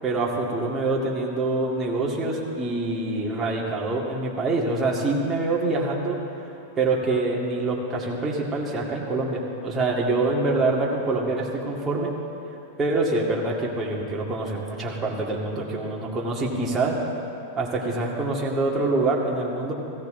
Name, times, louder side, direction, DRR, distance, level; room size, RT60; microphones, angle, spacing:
voice 1, 0.0-6.2 6.8-12.1 12.8-17.0 17.6-19.7, right 2 dB, 15° right, -3 dB, 2.1 m, -25 dB
16.0 x 16.0 x 3.8 m, 2.7 s
supercardioid pair, 145°, 0 cm